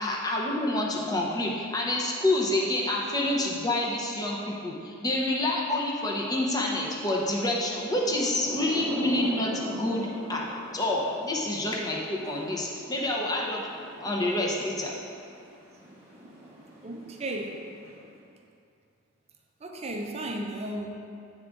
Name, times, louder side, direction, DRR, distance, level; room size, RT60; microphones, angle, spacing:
voice 1, 0.0-10.5 10.7-13.6 14.0-14.9, left 1 dB, 20° left, -3 dB, 0.8 m, -28 dB
Thunder / Rain, 7.7-18.3, equal, 10° right, 1.1 m, -42 dB
voice 2, 16.8-17.6 19.6-20.9, right 1 dB, 30° right, 2 dB, 0.6 m, -34 dB
9.2 x 3.5 x 3.8 m, 2.4 s
head